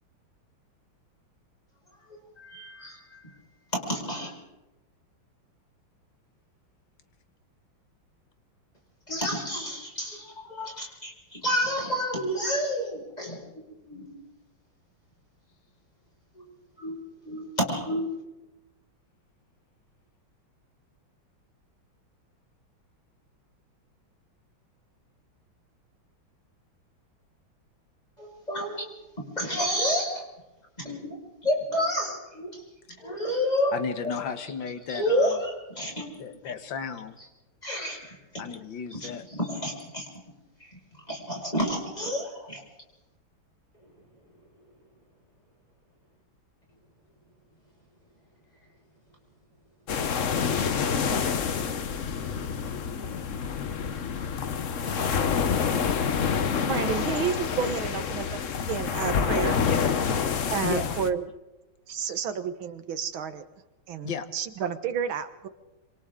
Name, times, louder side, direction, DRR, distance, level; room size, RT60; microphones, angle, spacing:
voice 1, 2.4-3.3 3.7-4.3 9.1-14.1 16.3-16.4 16.8-17.0 17.2-18.1 28.2-29.0 29.3-30.3 30.8-32.6 33.0-34.1 34.9-36.2 37.6-38.5 38.9-40.1 40.6-40.8 41.1-42.6 43.8-43.9, equal, 20° left, -1 dB, 5.9 m, -30 dB
voice 2, 33.7-35.4 36.2-37.2 38.4-39.2 57.6-57.7 59.6-59.8 60.6-61.0 62.1-62.2 64.0-64.3, left 6 dB, 65° left, 9 dB, 2.1 m, -34 dB
sound 1, 49.9-61.1, left 6 dB, 50° left, 1.1 m, -27 dB
voice 3, 56.7-58.4 58.7-59.6 60.5-61.2 61.9-63.4 63.9-65.5, right 7 dB, 75° right, 11 dB, 2.1 m, -30 dB
27.0 x 26.5 x 3.8 m, 1.0 s
omnidirectional pair, 2.2 m